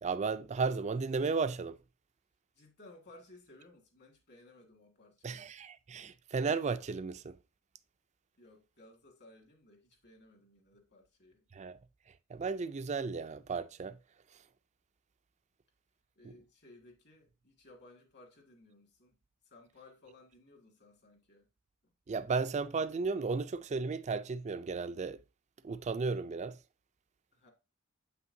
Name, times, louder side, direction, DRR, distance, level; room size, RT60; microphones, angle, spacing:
voice 1, 0.0-1.8 5.2-7.4 11.5-11.8 12.3-14.0 16.2-16.3 22.1-25.2 25.6-26.6, right 4 dB, 30° right, 0.4 m, -34 dB
voice 2, 2.6-5.5 8.4-11.4 16.2-19.2 19.4-21.5 21.8-21.9 27.3-27.5, left 2 dB, 50° left, 1.9 m, -59 dB
8.0 x 5.7 x 2.6 m
head